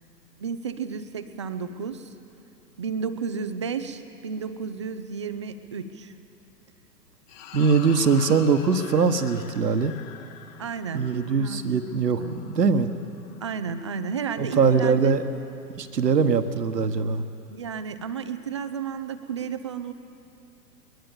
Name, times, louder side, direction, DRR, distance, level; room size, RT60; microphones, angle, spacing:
voice 1, 0.4-2.1 2.8-6.1 10.6-11.1 11.4-11.6 11.9-12.5 13.4-15.2 17.5-19.9, right 6 dB, 20° right, 10 dB, 0.4 m, -32 dB
sound 1, 7.3-13.8, left 9 dB, 25° left, 0.9 m, -45 dB
voice 2, 7.5-10.0 10.9-12.9 14.4-15.2 15.7-17.2, right 5 dB, 75° right, 9 dB, 1.4 m, -22 dB
21.5 x 21.0 x 7.1 m, 2.6 s
figure-of-eight pair, 120°, 49 cm